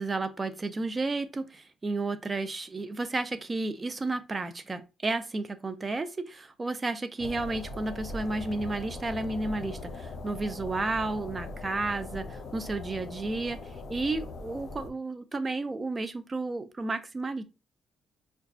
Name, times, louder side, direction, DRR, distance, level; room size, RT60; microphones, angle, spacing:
voice 1, 0.0-13.6 13.9-17.4, right 3 dB, 25° right, 0.5 m, -32 dB
sound 1, 7.2-14.9, left 3 dB, 55° left, 0.8 m, -40 dB
5.8 x 2.3 x 2.6 m
cardioid pair, 90°, 0 cm